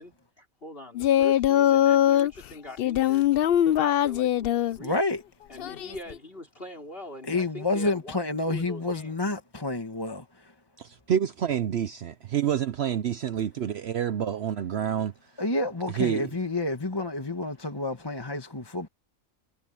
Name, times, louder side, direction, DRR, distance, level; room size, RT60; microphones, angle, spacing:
voice 1, 0.0-3.3 3.8-5.0 5.5-9.1, left 1 dB, 45° left, 5.1 m, -43 dB
Singing, 0.9-2.3 2.8-4.8 5.6-6.2, left 11 dB, 65° left, 0.6 m, -22 dB
voice 2, 4.8-5.2 7.3-10.5 15.4-18.9, left 2 dB, 20° left, 1.5 m, -29 dB
voice 3, 10.8-15.1 16.0-16.3, right 9 dB, 60° right, 0.8 m, -28 dB
omnidirectional pair, 1.4 m